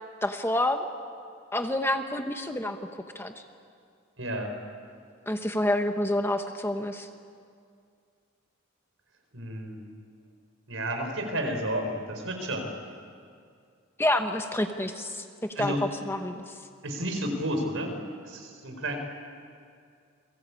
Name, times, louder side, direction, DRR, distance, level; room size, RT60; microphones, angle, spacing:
voice 1, 0.2-0.9 1.5-2.8 3.1-3.3 5.3-7.1 14.0-15.7 16.1-16.5, left 1 dB, 10° left, 6 dB, 1.1 m, -28 dB
voice 2, 4.2-4.6 9.3-9.8 10.7-12.7 15.5-15.8 16.8-18.0 18.2-19.0, right 1 dB, 70° right, 4 dB, 4.8 m, -31 dB
29.5 x 22.0 x 8.5 m, 2.3 s
head